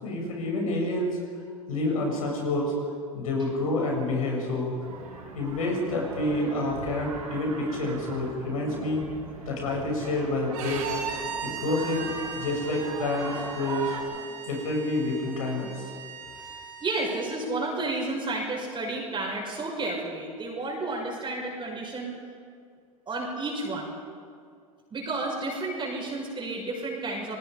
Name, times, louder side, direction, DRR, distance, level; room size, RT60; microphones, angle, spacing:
voice 1, 0.0-1.1 1.7-2.7 3.1-4.7 5.3-9.1 9.4-10.9 11.4-12.1 12.3-15.9, left 2 dB, 75° left, 0 dB, 7.3 m, -28 dB
sound 1, 4.8-14.0, right 5 dB, 85° right, 4.1 m, -40 dB
Bowed string instrument, 10.5-17.3, right 7 dB, 65° right, 5.1 m, -38 dB
voice 2, 16.4-22.1 23.1-23.9 24.9-27.4, right 2 dB, 25° right, -3 dB, 5.9 m, -31 dB
30.0 x 20.0 x 5.1 m, 2.2 s
hypercardioid pair, 80°, 18 cm